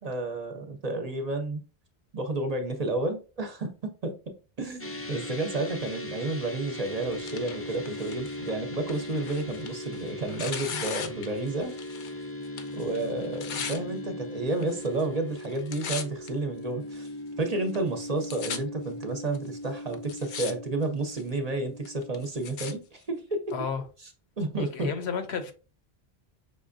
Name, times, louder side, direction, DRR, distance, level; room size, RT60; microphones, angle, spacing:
voice 1, 0.0-1.6 2.1-11.7 12.7-17.1 17.4-23.6 24.4-24.9, right 2 dB, 45° right, 0.6 m, -31 dB
sound 1, 4.8-22.2, left 1 dB, 25° left, 0.3 m, -39 dB
Tearing, 6.7-12.2 12.4-13.8 14.5-15.0 15.3-16.3 16.9-17.0 17.7-17.8 18.0-18.6 19.3-19.4 19.9-20.5 20.8-21.3 21.8-22.7 23.5-23.6, left 7 dB, 60° left, 0.7 m, -38 dB
voice 2, 23.5-23.8 24.6-25.5, left 6 dB, 85° left, 1.0 m, -32 dB
5.3 x 3.3 x 2.5 m
omnidirectional pair, 1.1 m